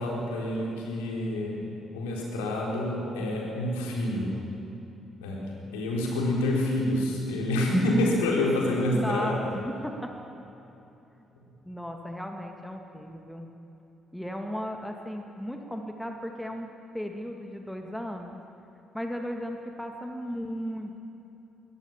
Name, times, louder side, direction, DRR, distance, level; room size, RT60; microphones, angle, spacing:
voice 1, 0.0-4.3 5.2-5.5 5.7-9.5, left 1 dB, 75° left, -2 dB, 4.3 m, -27 dB
voice 2, 8.9-10.2 11.6-13.5 14.1-18.4 18.9-21.0, equal, 5° left, 3 dB, 2.3 m, -36 dB
21.5 x 20.0 x 7.4 m, 2.9 s
figure-of-eight pair, 45°, 0 cm